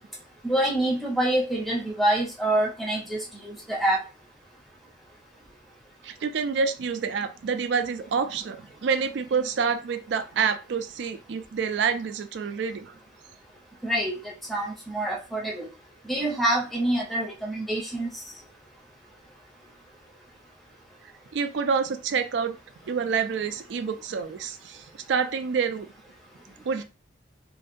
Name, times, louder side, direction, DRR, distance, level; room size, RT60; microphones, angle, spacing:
voice 1, 0.4-3.2 3.4-4.0 13.8-15.7 16.1-18.1, right 1 dB, ahead, -3 dB, 0.5 m, -26 dB
voice 2, 6.0-12.9 21.3-22.6 22.9-25.9 26.6-26.8, right 6 dB, 70° right, 9 dB, 0.3 m, -27 dB
2.6 x 2.2 x 2.5 m, 0.31 s
head